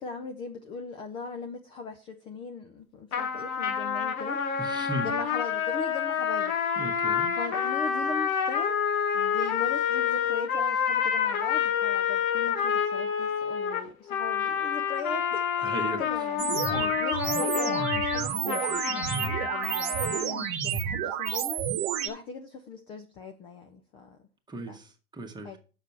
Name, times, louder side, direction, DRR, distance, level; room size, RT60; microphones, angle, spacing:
voice 1, 0.0-4.4 5.0-6.6 7.4-8.8 9.1-15.7 16.0-16.4 17.0-24.2 24.6-24.8 25.4-25.6, left 4 dB, 15° left, 0.3 m, -39 dB
sound 1, 3.1-20.3, left 7 dB, 70° left, 1.5 m, -28 dB
voice 2, 4.6-5.1 6.8-7.3 15.6-16.2 16.7-17.0 24.5-25.6, right 1 dB, 10° right, 1.3 m, -36 dB
sound 2, 16.4-22.1, right 9 dB, 40° right, 1.2 m, -30 dB
6.5 x 6.1 x 5.4 m
hypercardioid pair, 115°, 44 cm